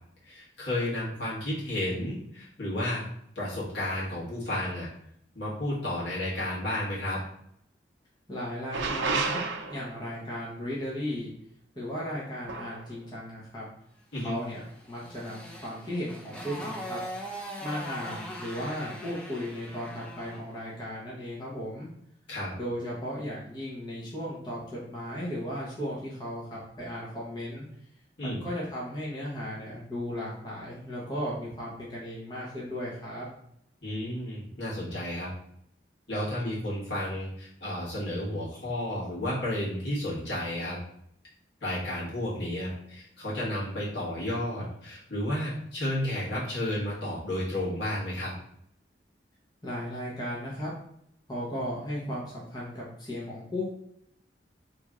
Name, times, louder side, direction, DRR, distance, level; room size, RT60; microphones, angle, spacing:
voice 1, 0.2-3.0 3.3-4.9 5.3-7.2 14.1-14.4 22.3-22.5 28.2-28.4 33.8-35.3 36.1-40.8 41.6-48.3, left 1 dB, 75° left, -7 dB, 1.5 m, -32 dB
voice 2, 8.3-9.4 9.7-11.3 11.7-13.7 14.2-17.0 17.6-21.9 22.5-27.7 28.2-33.3 49.6-50.7 51.3-53.7, equal, 25° left, -7 dB, 0.8 m, -36 dB
sound 1, 8.7-10.1 12.5-12.8, right 4 dB, 80° right, 0.4 m, -31 dB
Motorcycle, 14.4-20.5, equal, 5° left, 0.4 m, -41 dB
3.1 x 2.6 x 3.5 m, 0.73 s
head